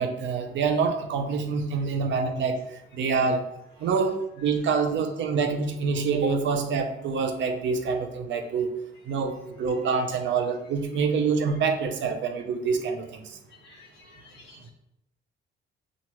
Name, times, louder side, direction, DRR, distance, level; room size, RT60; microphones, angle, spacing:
voice 1, 0.0-2.6 2.9-3.4 3.8-8.7 9.1-13.4, right 5 dB, 70° right, 6 dB, 0.6 m, -26 dB
voice 2, 13.6-14.7, left 2 dB, 60° left, 3 dB, 0.5 m, -52 dB
5.8 x 2.5 x 2.9 m, 0.82 s
cardioid pair, 90°, 20 cm